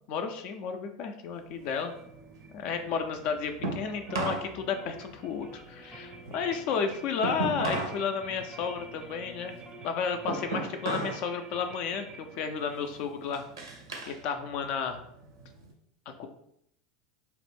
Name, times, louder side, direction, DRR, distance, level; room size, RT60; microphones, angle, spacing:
voice 1, 0.1-1.9 2.5-9.6 9.8-13.4 14.1-15.0 16.1-16.3, left 6 dB, 55° left, 6 dB, 0.3 m, -32 dB
sound 1, 1.4-4.5 4.8-8.0 8.4-11.3 11.6-12.0 12.5-14.2 14.6-15.7, right 2 dB, 85° right, 0.6 m, -36 dB
sound 2, 1.6-15.6, right 3 dB, 40° right, 0.4 m, -51 dB
sound 3, 3.6-11.0, left 2 dB, 15° left, 0.7 m, -52 dB
2.4 x 2.1 x 3.3 m, 0.71 s
hypercardioid pair, 85°, 2 cm